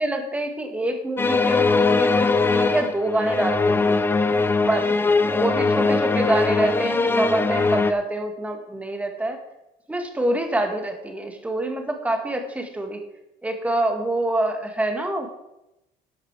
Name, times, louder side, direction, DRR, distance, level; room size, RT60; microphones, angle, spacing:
voice 1, 0.0-4.1 4.6-4.9 5.3-9.4 9.9-13.0 13.4-15.3, right 1 dB, 10° right, 4 dB, 1.7 m, -26 dB
sound 1, 1.2-7.9, left 3 dB, 15° left, 0.5 m, -21 dB
12.5 x 8.2 x 4.6 m, 0.87 s
cardioid pair, 135°, 16 cm